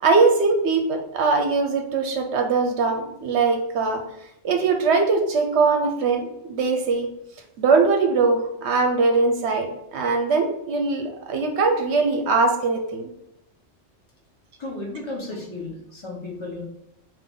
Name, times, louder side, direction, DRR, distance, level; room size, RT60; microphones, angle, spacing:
voice 1, 0.0-4.0 4.4-7.1 7.6-13.1, right 4 dB, 70° right, 4 dB, 0.9 m, -21 dB
voice 2, 14.6-16.6, left 2 dB, 25° left, -3 dB, 1.0 m, -34 dB
3.7 x 2.6 x 3.7 m, 0.79 s
omnidirectional pair, 1.2 m